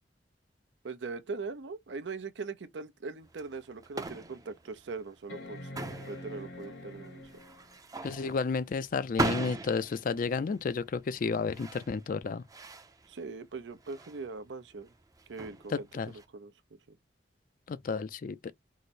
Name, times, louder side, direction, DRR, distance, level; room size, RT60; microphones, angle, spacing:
voice 1, 0.8-5.6 6.1-7.2 13.1-14.9 15.3-16.5 16.9-17.0, right 4 dB, 85° right, 0.6 m, -41 dB
sound 1, 3.1-3.2 3.8-3.9 5.3-7.8 9.5-9.6, left 1 dB, 75° left, 1.1 m, -45 dB
sound 2, 3.2-16.2, right 2 dB, 20° right, 0.5 m, -40 dB
voice 2, 8.0-12.4 15.7-16.1 17.7-18.5, left 5 dB, 50° left, 0.4 m, -32 dB
4.8 x 2.0 x 4.2 m
head